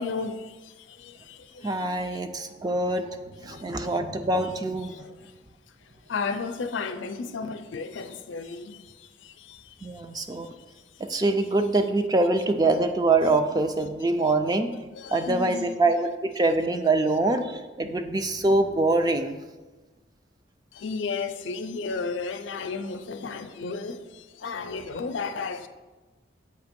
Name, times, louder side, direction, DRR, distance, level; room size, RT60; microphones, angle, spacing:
voice 1, 0.0-2.2 2.6-2.9 3.5-3.9 4.9-5.3 6.1-9.9 15.0-15.7 20.7-25.7, left 4 dB, 75° left, 0.5 m, -34 dB
voice 2, 1.6-4.9 9.8-10.5 11.0-14.7 15.1-19.4, right 2 dB, 20° right, 0.3 m, -24 dB
7.9 x 2.8 x 5.1 m
head